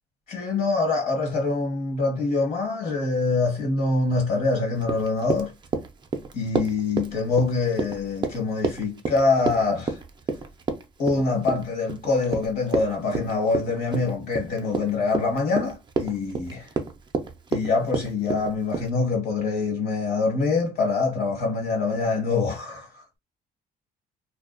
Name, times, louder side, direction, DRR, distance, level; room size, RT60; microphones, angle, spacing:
voice 1, 0.3-5.5 6.3-10.0 11.0-16.7 17.5-23.2, left 3 dB, 60° left, 1.2 m, -25 dB
Run, 4.8-18.9, right 4 dB, 25° right, 0.4 m, -30 dB
2.4 x 2.1 x 2.5 m
cardioid pair, 110°, 17 cm